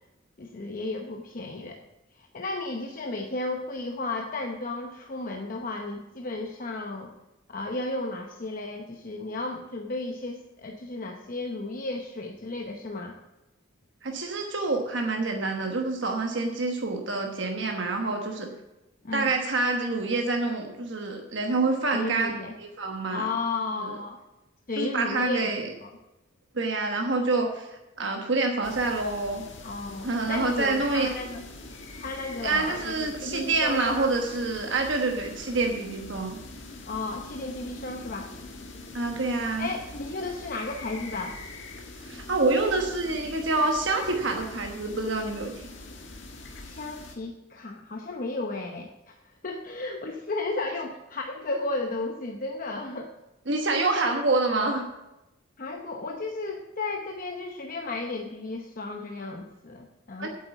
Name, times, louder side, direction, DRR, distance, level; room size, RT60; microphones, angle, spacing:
voice 1, 0.4-1.8 2.2-7.1 7.5-13.2 19.0-19.3 21.9-22.5 23.1-24.2 24.7-25.5 25.8-25.9 29.6-31.4 32.0-34.1 36.9-38.3 39.6-41.4 46.6-49.2 49.4-53.1 55.6-60.3, left 2 dB, 45° left, 3 dB, 0.8 m, -34 dB
voice 2, 14.0-18.5 19.1-22.3 22.6-23.3 24.8-25.7 26.5-29.4 30.0-31.1 32.4-36.4 38.9-39.7 42.0-45.5 53.5-54.9 60.2-60.3, right 3 dB, 60° right, 2 dB, 1.2 m, -27 dB
sound 1, 28.6-47.2, left 2 dB, 65° left, 1.9 m, -43 dB
8.4 x 8.2 x 8.1 m, 0.98 s
head